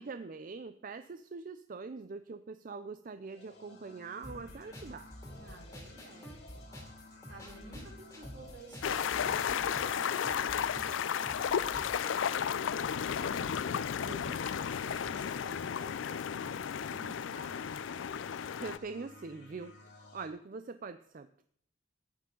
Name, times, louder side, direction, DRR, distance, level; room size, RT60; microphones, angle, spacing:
voice 1, 0.0-5.1 14.0-14.4 18.6-21.4, right 4 dB, 45° right, 10 dB, 0.5 m, -43 dB
sound 1, 3.2-12.8 14.2-20.3, left 2 dB, 65° left, 2.2 m, -55 dB
sound 2, 4.2-12.2, equal, 15° left, 2.4 m, -49 dB
voice 2, 5.3-6.4 7.2-10.1 10.4-12.5 12.8-17.8, right 2 dB, 70° right, -2 dB, 4.8 m, -53 dB
sound 3, 8.8-18.8, left 8 dB, 85° left, 0.4 m, -33 dB
14.5 x 10.0 x 3.8 m, 0.63 s
head